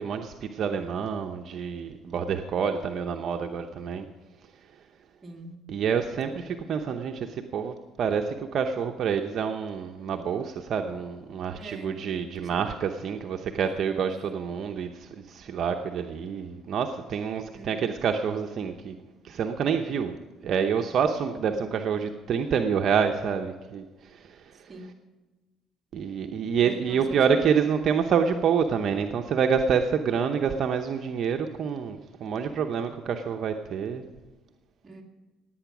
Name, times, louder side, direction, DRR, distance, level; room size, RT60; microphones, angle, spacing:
voice 1, 0.0-4.1 5.7-19.0 19.2-20.2 20.4-23.8 24.1-24.4 25.9-34.0, right 7 dB, 50° right, 4 dB, 0.8 m, -27 dB
voice 2, 5.2-5.6 11.6-12.6 13.7-14.2 17.5-17.9 21.1-21.8 24.5-25.0 26.6-27.4 34.8-35.0, right 2 dB, 20° right, 1 dB, 2.3 m, -45 dB
17.5 x 9.1 x 6.1 m, 1.2 s
cardioid pair, 120°, 0 cm